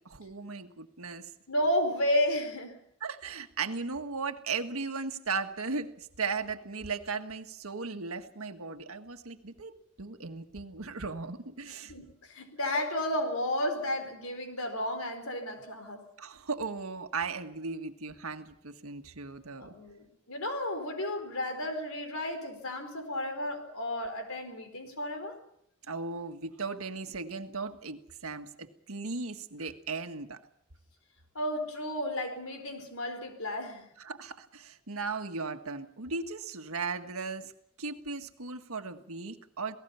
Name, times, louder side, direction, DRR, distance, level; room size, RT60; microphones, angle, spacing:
voice 1, 0.0-1.3 3.0-9.7 10.0-11.9 16.2-19.7 25.9-30.4 34.0-37.5 37.8-39.8, right 4 dB, 85° right, 1.7 m, -37 dB
voice 2, 1.5-2.8 11.9-16.0 19.5-25.4 31.3-33.9, left 1 dB, 90° left, 4.4 m, -32 dB
28.5 x 18.5 x 5.7 m
head